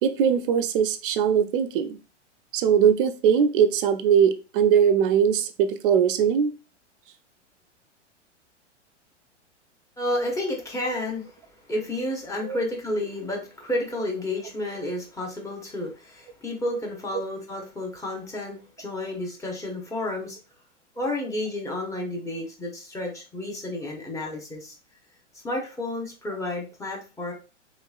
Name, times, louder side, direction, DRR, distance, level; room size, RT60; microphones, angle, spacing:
voice 1, 0.0-2.0 2.5-6.5 12.4-12.6, right 8 dB, 45° right, 9 dB, 0.5 m, -21 dB
voice 2, 10.0-11.4 11.7-20.4 21.0-24.8 25.4-27.3, left 1 dB, 10° left, -1 dB, 0.8 m, -31 dB
3.2 x 3.0 x 2.3 m, 0.32 s
hypercardioid pair, 110°, 37 cm